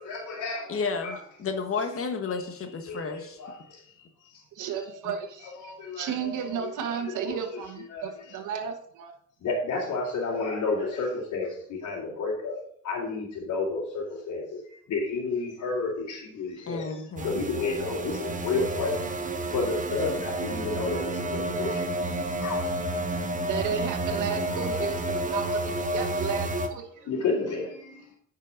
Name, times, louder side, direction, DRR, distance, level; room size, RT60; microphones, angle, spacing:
voice 1, 0.1-1.2 2.9-3.8 4.8-5.0 5.6-6.5 6.8-7.4 7.9-8.1 9.4-12.6 12.8-16.9 17.2-21.8 22.4-22.6 22.9-23.2 24.5-25.2 27.1-28.0, left 3 dB, 80° left, -7 dB, 2.9 m, -31 dB
voice 2, 0.7-3.4 5.0-5.1 16.7-17.5, left 4 dB, 45° left, 6 dB, 1.5 m, -32 dB
voice 3, 4.6-9.1 23.5-27.1, right 7 dB, 80° right, 4 dB, 1.4 m, -33 dB
sound 1, 17.2-26.7, right 1 dB, 25° right, 1.2 m, -30 dB
9.5 x 5.5 x 5.1 m, 0.62 s
cardioid pair, 90°, 30 cm